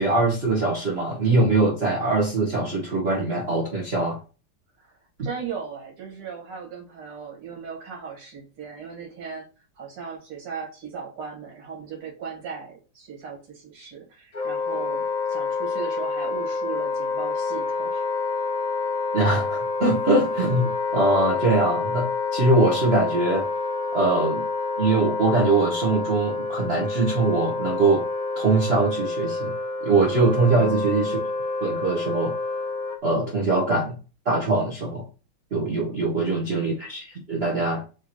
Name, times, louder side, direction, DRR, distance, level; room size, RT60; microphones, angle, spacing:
voice 1, 0.0-4.2 19.1-23.5 23.9-24.4 24.8-28.0 28.4-29.5 29.8-31.3 31.6-32.3 33.0-34.0 34.2-35.0 35.5-37.8, right 2 dB, 40° right, -3 dB, 0.9 m, -22 dB
voice 2, 4.8-9.5 9.8-18.0 35.9-36.6, right 6 dB, 90° right, -1 dB, 2.5 m, -37 dB
Wind instrument woodwind instrument, 14.3-33.0, left 3 dB, 20° left, 0.9 m, -28 dB
4.8 x 3.1 x 2.9 m, 0.34 s
omnidirectional pair, 2.4 m